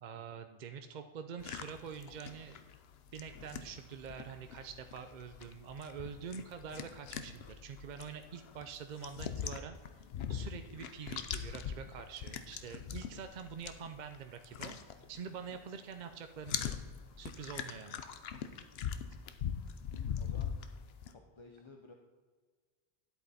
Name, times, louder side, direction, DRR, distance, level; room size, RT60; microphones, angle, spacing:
voice 1, 0.0-2.6 3.1-14.8 15.1-16.8 17.2-18.0, right 7 dB, 55° right, 8 dB, 0.6 m, -46 dB
sound 1, 1.4-15.6 15.9-21.1, left 8 dB, 75° left, 0.9 m, -42 dB
voice 2, 19.9-20.6 21.1-21.9, left 4 dB, 35° left, 3 dB, 0.6 m, -55 dB
10.5 x 8.3 x 4.1 m, 1.5 s
omnidirectional pair, 1.1 m